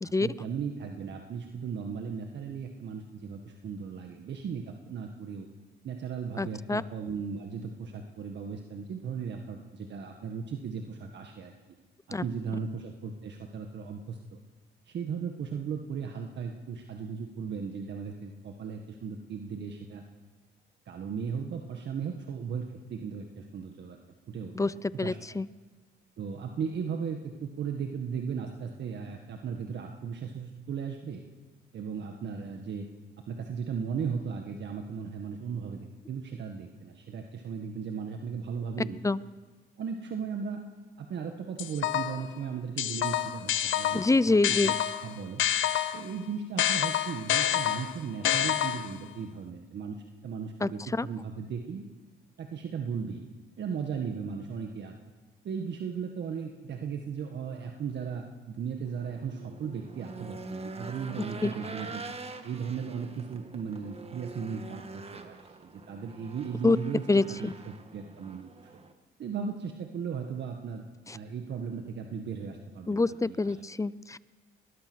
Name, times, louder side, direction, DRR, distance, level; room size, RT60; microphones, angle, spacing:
voice 1, 0.0-5.5 5.8-11.5 12.1-14.4 14.9-20.0 20.9-24.0 24.3-24.7 25.0-25.2 26.2-31.2 31.7-32.9 33.3-39.0 39.8-40.6 41.0-44.8 45.0-45.4 45.9-51.8 52.4-53.2 53.6-54.9 55.4-62.0 62.4-68.5 69.2-70.8 71.1-73.5, right 6 dB, 60° right, 4 dB, 1.7 m, -36 dB
voice 2, 6.4-6.8 12.1-12.2 24.5-25.5 39.0-39.2 43.9-44.8 50.6-51.1 61.4-61.5 66.6-66.8 67.1-67.5 71.1-71.2 72.9-74.2, left 3 dB, 15° left, 18 dB, 0.6 m, -26 dB
sound 1, 41.6-42.3 42.8-46.1 46.6-49.0, left 11 dB, 75° left, 0.8 m, -28 dB
Race car auto racing / Engine, 58.8-68.9, right 3 dB, 30° right, 1.9 m, -44 dB
22.5 x 20.0 x 6.3 m, 1.3 s
cardioid pair, 90°, 20 cm